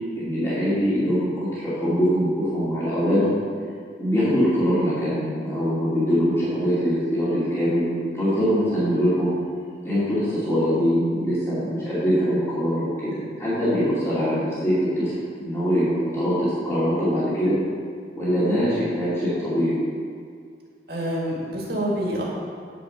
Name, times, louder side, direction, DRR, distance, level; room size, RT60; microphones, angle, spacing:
voice 1, 0.1-3.4 3.9-9.3 9.8-17.5 18.1-19.8, equal, 15° left, -11 dB, 2.7 m, -23 dB
voice 2, 20.9-22.2, equal, 60° right, -3 dB, 2.1 m, -27 dB
10.0 x 5.1 x 6.6 m, 2.2 s
head